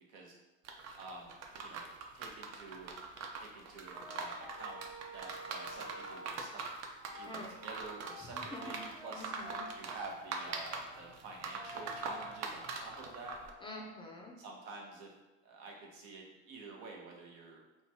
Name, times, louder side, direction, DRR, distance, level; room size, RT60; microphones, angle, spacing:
sound 1, 0.6-13.5, right 4 dB, 45° right, 0.5 m, -43 dB
voice 1, 1.0-1.9 2.1-2.9 3.4-4.8 5.1-6.6 7.2-9.3 9.7-13.4 14.4-15.1 15.4-17.6, right 3 dB, 75° right, 0 dB, 0.9 m, -49 dB
Brass instrument, 3.9-6.4 7.0-14.0, equal, 20° right, 1.1 m, -51 dB
voice 2, 8.2-8.8 9.1-9.7 13.6-14.3, left 1 dB, 15° left, -3 dB, 0.4 m, -46 dB
2.9 x 2.3 x 2.7 m, 1.1 s
supercardioid pair, 90°, 38 cm